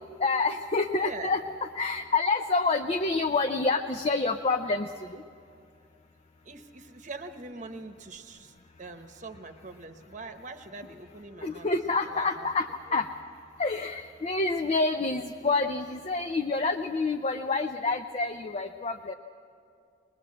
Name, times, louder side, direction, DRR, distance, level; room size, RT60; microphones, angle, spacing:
voice 1, 0.2-1.4 1.7-5.2 11.4-13.1 13.6-19.1, left 3 dB, 35° left, 6 dB, 0.5 m, -28 dB
voice 2, 0.9-1.4 6.4-12.5 12.8-13.1, right 3 dB, 40° right, 7 dB, 1.0 m, -43 dB
21.5 x 20.5 x 7.6 m, 2.4 s
head